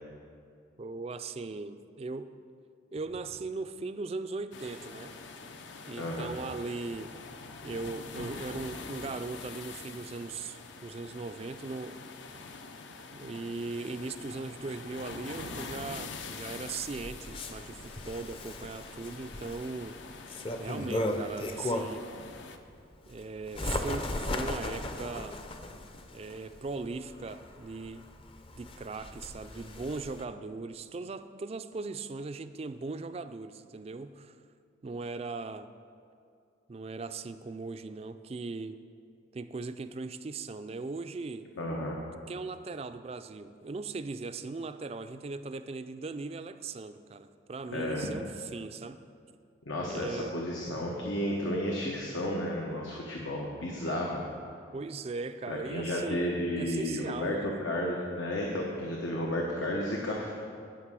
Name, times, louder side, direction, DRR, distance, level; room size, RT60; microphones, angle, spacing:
voice 1, 0.8-2.3 2.9-5.2 5.9-7.1 7.6-12.1 13.1-20.0 20.6-22.1 23.1-25.4 26.1-28.1 28.6-34.4 34.8-35.7 36.7-38.8 39.3-41.5 42.3-49.0 49.9-50.4 54.7-56.3 56.6-57.5, right 3 dB, 30° right, 11 dB, 0.3 m, -39 dB
sound 1, 4.5-22.6, left 4 dB, 70° left, 0.6 m, -45 dB
voice 2, 6.0-6.3 41.6-42.0 47.7-48.1 49.7-54.2 55.5-60.4, left 1 dB, 90° left, -2 dB, 1.2 m, -32 dB
Bird, 16.7-22.1 22.6-30.2, left 1 dB, 30° left, 0.6 m, -37 dB
11.5 x 5.3 x 7.5 m, 2.4 s
head